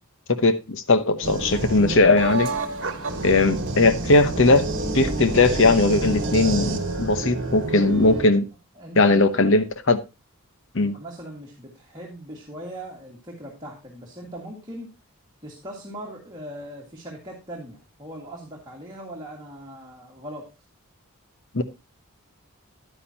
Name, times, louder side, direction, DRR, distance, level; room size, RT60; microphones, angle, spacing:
voice 1, 0.3-2.5 3.2-4.7 4.9-8.4 9.0-10.0 10.7-11.0 21.5-21.6, left 3 dB, 60° left, 1.0 m, -19 dB
sound 1, 1.2-8.2, right 2 dB, 55° right, 1.4 m, -28 dB
sound 2, 1.3-7.7, equal, 20° left, 2.1 m, -40 dB
voice 2, 8.8-9.7 10.8-14.9 15.4-20.5, right 1 dB, 20° right, 2.0 m, -39 dB
10.5 x 9.8 x 2.9 m
head